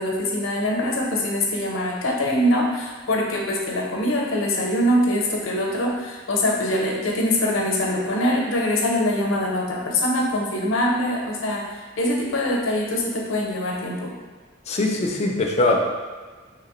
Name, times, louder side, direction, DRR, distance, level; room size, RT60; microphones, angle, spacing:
voice 1, 0.0-14.1, left 1 dB, 85° left, -1 dB, 0.6 m, -23 dB
voice 2, 14.7-15.8, left 2 dB, 35° left, 1 dB, 0.4 m, -21 dB
3.0 x 2.9 x 3.0 m, 1.4 s
head